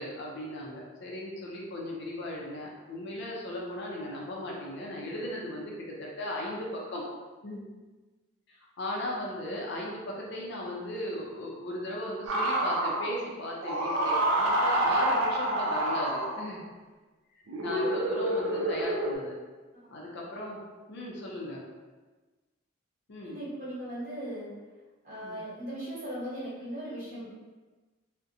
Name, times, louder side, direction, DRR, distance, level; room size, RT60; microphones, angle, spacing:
voice 1, 0.0-7.0 7.4-7.6 8.5-16.6 17.4-19.4 19.9-20.6 20.9-21.6 23.1-23.4 25.2-25.4, left 1 dB, 55° left, -3 dB, 0.5 m, -37 dB
sound 1, 12.3-13.2 13.6-16.6 17.5-19.2, right 1 dB, 65° right, 0.4 m, -28 dB
voice 2, 23.2-24.5 25.0-27.3, right 1 dB, 35° right, -10 dB, 1.2 m, -38 dB
2.4 x 2.1 x 2.7 m, 1.3 s
head